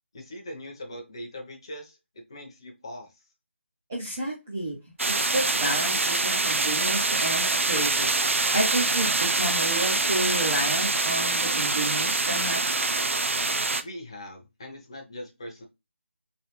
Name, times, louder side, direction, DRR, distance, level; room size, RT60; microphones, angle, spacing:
voice 1, 0.1-3.1 13.8-15.6, left 1 dB, 25° left, 2 dB, 0.7 m, -41 dB
voice 2, 3.9-4.8 5.1-8.1 8.5-12.9, right 1 dB, 10° right, -5 dB, 0.4 m, -31 dB
sound 1, 5.0-13.8, right 3 dB, 85° right, 0.5 m, -25 dB
3.2 x 3.2 x 2.9 m, 0.24 s
figure-of-eight pair, 180°, 7 cm